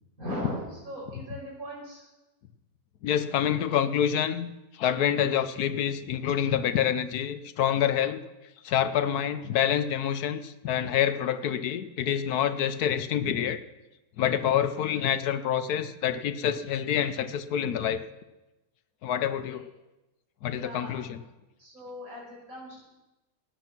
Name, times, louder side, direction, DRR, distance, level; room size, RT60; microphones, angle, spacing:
voice 1, 0.2-2.1 19.4-19.6 20.6-20.9 21.6-22.8, equal, 65° right, -4 dB, 6.2 m, -39 dB
voice 2, 3.0-4.5 4.7-8.2 8.6-13.6 14.2-18.0 19.0-19.7 20.4-21.2, left 9 dB, 85° left, 11 dB, 1.3 m, -27 dB
17.5 x 9.5 x 6.0 m, 1.0 s
omnidirectional pair, 1.6 m